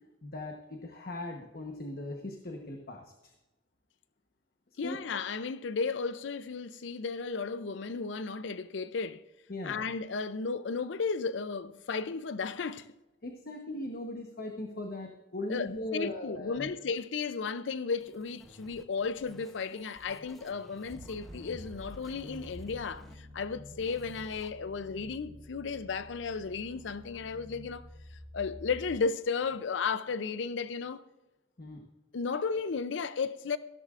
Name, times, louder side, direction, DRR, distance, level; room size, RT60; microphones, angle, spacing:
voice 1, 0.2-3.3 4.8-5.0 9.5-9.8 13.2-16.7 31.6-31.8, left 1 dB, 50° left, 1.1 m, -39 dB
voice 2, 4.8-9.2 9.6-12.9 15.5-27.9 28.3-31.0 32.1-33.6, left 5 dB, 75° left, 0.5 m, -34 dB
sound 1, 18.0-23.1 23.8-24.5, equal, ahead, 0.9 m, -55 dB
sound 2, 20.9-29.0, left 1 dB, 15° right, 3.4 m, -49 dB
15.0 x 13.0 x 2.5 m
head